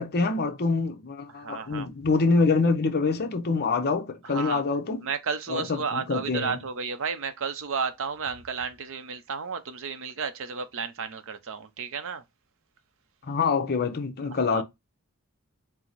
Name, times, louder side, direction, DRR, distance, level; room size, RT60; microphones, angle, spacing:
voice 1, 0.0-5.0 5.5-6.6 13.3-14.6, left 4 dB, 45° left, 0.7 m, -25 dB
voice 2, 1.4-1.9 4.2-4.6 5.0-12.2 14.3-14.6, right 5 dB, 65° right, 0.7 m, -32 dB
4.5 x 2.1 x 4.0 m
head